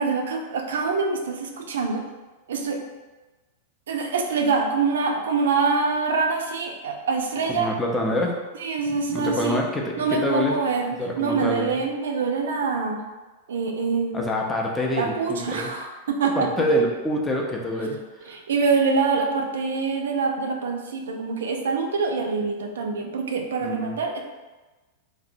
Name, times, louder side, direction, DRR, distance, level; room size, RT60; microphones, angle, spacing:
voice 1, 0.0-2.0 2.5-2.8 3.9-7.7 8.6-9.6 10.0-13.0 13.5-14.2 15.0-16.5 18.3-24.2, right 4 dB, 85° right, 3 dB, 0.3 m, -25 dB
voice 2, 7.5-8.3 8.9-10.6 11.0-11.7 14.1-15.7 16.3-18.4 23.6-24.0, left 1 dB, 10° left, -1 dB, 0.4 m, -26 dB
2.6 x 2.0 x 2.5 m, 1.2 s
hypercardioid pair, 125°, 0 cm